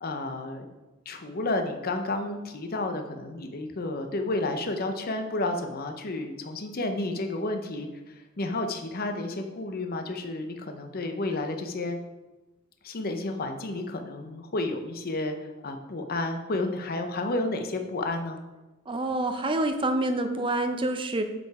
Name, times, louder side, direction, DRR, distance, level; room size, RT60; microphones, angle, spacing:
voice 1, 0.0-0.7 1.1-12.0 12.8-18.4, left 2 dB, 45° left, 5 dB, 0.7 m, -31 dB
voice 2, 18.9-21.2, right 2 dB, 25° right, 6 dB, 0.6 m, -27 dB
8.0 x 5.1 x 4.7 m, 1.1 s
head